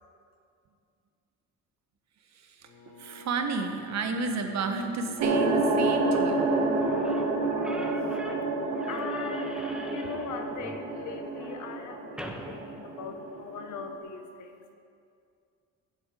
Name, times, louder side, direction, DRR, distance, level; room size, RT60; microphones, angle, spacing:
voice 1, 2.3-2.7 3.0-6.5, right 4 dB, 60° right, 5 dB, 1.4 m, -32 dB
Bowed string instrument, 2.6-7.4, left 1 dB, 50° left, 3.3 m, -49 dB
sound 1, 5.2-13.9, right 2 dB, 90° right, 1.9 m, -29 dB
Slam / Squeak, 6.1-13.6, equal, 5° right, 1.1 m, -45 dB
voice 2, 8.4-14.7, left 6 dB, 80° left, 5 dB, 1.3 m, -40 dB
15.0 x 8.1 x 5.3 m, 2.4 s
cardioid pair, 90°, 30 cm